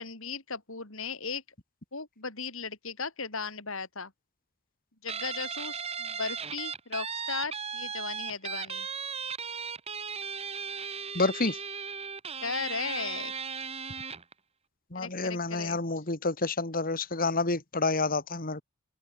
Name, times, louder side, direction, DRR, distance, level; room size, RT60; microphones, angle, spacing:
voice 1, 0.0-1.4 1.9-4.1 5.0-8.9 12.4-13.3 14.9-15.8, left 5 dB, 70° left, 4.8 m, -36 dB
Guitar, 5.1-14.3, right 6 dB, 30° right, 2.2 m, -36 dB
voice 2, 11.1-11.6 14.9-18.6, left 3 dB, 40° left, 2.6 m, -29 dB
open air
head